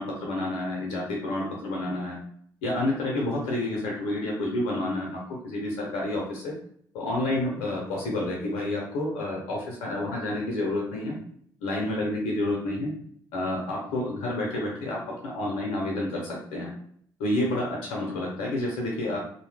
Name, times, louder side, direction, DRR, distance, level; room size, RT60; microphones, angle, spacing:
voice 1, 0.0-2.2 2.6-6.5 6.9-11.2 11.6-12.9 13.3-16.7 17.2-19.2, left 1 dB, 90° left, -2 dB, 0.6 m, -29 dB
2.6 x 2.1 x 3.3 m, 0.64 s
supercardioid pair, 55°, 9 cm